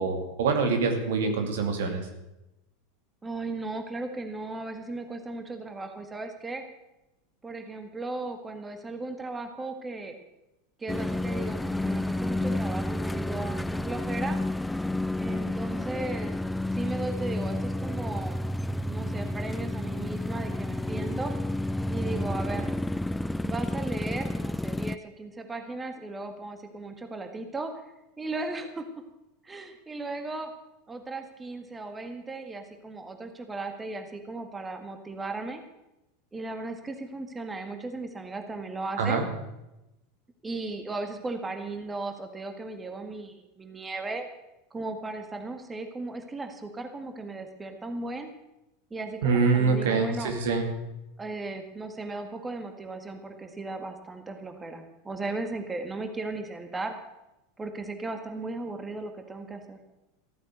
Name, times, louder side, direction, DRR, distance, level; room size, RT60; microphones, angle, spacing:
voice 1, 0.0-2.1 39.0-39.2 49.2-50.7, right 4 dB, 70° right, 5 dB, 2.4 m, -25 dB
voice 2, 3.2-6.6 7.4-10.1 10.8-14.4 15.2-16.3 16.7-18.4 18.8-21.3 21.9-22.7 23.4-27.7 28.2-28.8 29.4-30.5 30.9-35.6 36.3-39.2 40.4-44.3 44.7-48.3 48.9-50.3 51.2-56.9 57.6-59.8, right 2 dB, 15° right, 6 dB, 1.8 m, -36 dB
sound 1, 10.9-25.0, left 1 dB, 5° left, 0.4 m, -30 dB
15.0 x 8.9 x 8.0 m, 0.94 s
hypercardioid pair, 85°, 0 cm